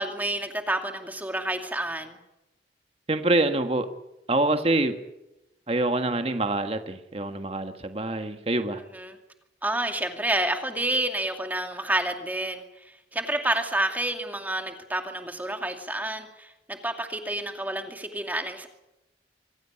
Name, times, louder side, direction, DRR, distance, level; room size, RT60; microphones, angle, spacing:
voice 1, 0.0-2.2 8.9-9.2 9.6-12.6 13.1-18.7, right 1 dB, 10° right, 5 dB, 2.4 m, -29 dB
voice 2, 3.1-3.9 4.3-5.0 5.7-8.8, right 2 dB, 30° right, 7 dB, 1.5 m, -25 dB
25.0 x 16.0 x 9.7 m, 0.94 s
head